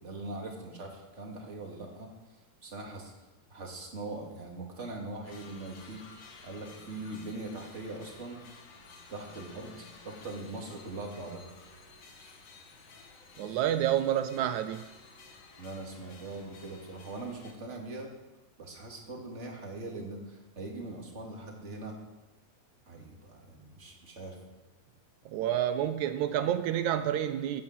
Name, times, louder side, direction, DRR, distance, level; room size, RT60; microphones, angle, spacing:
voice 1, 0.0-2.1 2.6-3.1 3.5-8.4 9.1-9.8 10.0-11.4 12.2-12.3 15.6-18.1 18.6-21.9 22.9-24.4, right 2 dB, 20° right, 0 dB, 2.5 m, -41 dB
sound 1, 5.2-17.5, left 4 dB, 60° left, 3.5 m, -53 dB
voice 2, 13.4-14.8 25.2-27.6, right 11 dB, 90° right, 10 dB, 1.6 m, -29 dB
16.5 x 9.6 x 7.6 m, 1.1 s
omnidirectional pair, 4.2 m